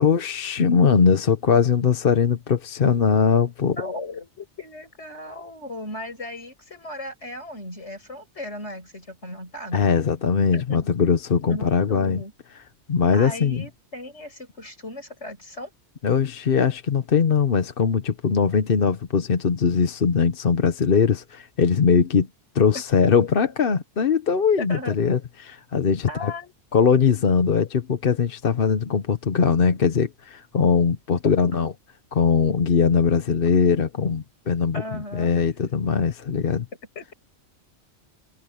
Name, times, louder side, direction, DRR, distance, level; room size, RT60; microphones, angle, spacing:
voice 1, 0.0-3.8 9.7-12.2 12.9-13.6 16.0-22.3 22.5-26.3 26.7-31.7 32.1-36.7, left 6 dB, 55° left, 1.1 m, -21 dB
voice 2, 3.7-9.9 10.5-10.9 11.5-12.3 13.1-15.7 22.7-22.8 24.6-24.9 26.1-26.5 31.4-31.5 34.7-35.3 37.0-37.1, left 1 dB, 75° left, 7.1 m, -36 dB
omnidirectional pair, 1.2 m